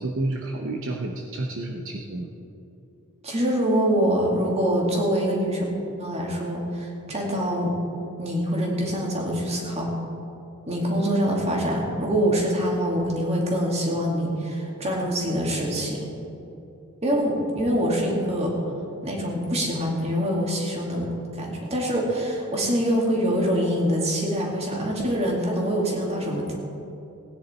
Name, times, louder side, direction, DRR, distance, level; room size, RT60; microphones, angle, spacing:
voice 1, 0.0-2.3, right 2 dB, 60° right, 0 dB, 0.9 m, -30 dB
voice 2, 3.2-5.6 6.0-7.7 8.2-9.9 10.7-16.0 17.0-18.6 19.0-26.5, equal, 30° right, -2 dB, 2.4 m, -25 dB
18.0 x 9.8 x 4.4 m, 2.8 s
head